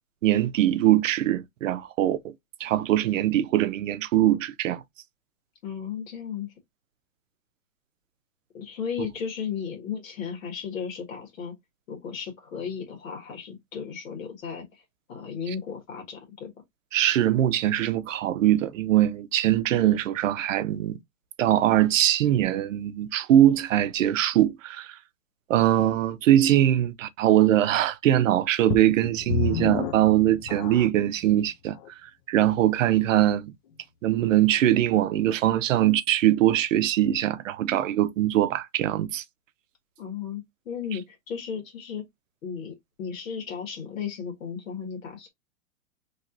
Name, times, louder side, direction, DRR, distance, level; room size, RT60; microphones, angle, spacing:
voice 1, 0.2-2.3 2.6-4.8 15.5-15.6 16.9-21.0 21.4-25.0 25.5-33.5 34.0-39.2, right 12 dB, 65° right, 0.6 m, -22 dB
voice 2, 5.6-6.5 8.5-11.5 11.9-14.7 15.1-16.5 40.0-42.0 42.4-45.3, left 7 dB, 70° left, 1.6 m, -35 dB
sound 1, 28.7-31.1 31.8-31.9 32.5-32.6, left 7 dB, 35° left, 0.4 m, -30 dB
3.0 x 2.9 x 2.5 m
hypercardioid pair, 130°, 41 cm